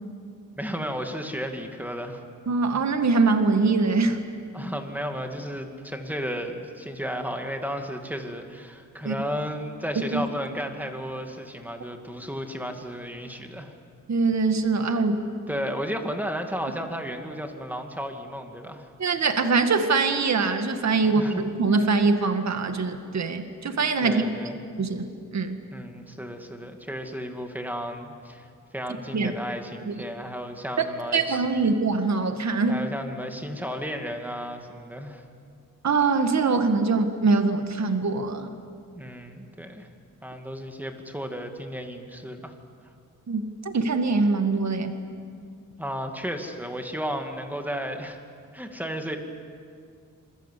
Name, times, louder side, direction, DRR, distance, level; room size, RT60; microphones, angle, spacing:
voice 1, 0.6-2.2 4.5-13.7 15.5-18.9 21.0-21.4 24.0-24.6 25.7-31.4 32.7-35.2 38.9-39.9 40.2-42.5 45.8-48.2 48.5-49.2, equal, 5° right, 4 dB, 2.4 m, -33 dB
voice 2, 2.5-4.2 9.1-9.2 10.1-10.2 14.1-15.3 19.0-24.2 24.8-25.6 29.1-29.3 29.9-30.0 31.1-32.8 35.8-38.5 43.3-43.4 43.7-45.0, right 4 dB, 55° right, 7 dB, 1.9 m, -23 dB
27.0 x 22.5 x 8.4 m, 2.3 s
wide cardioid pair, 115°, 33 cm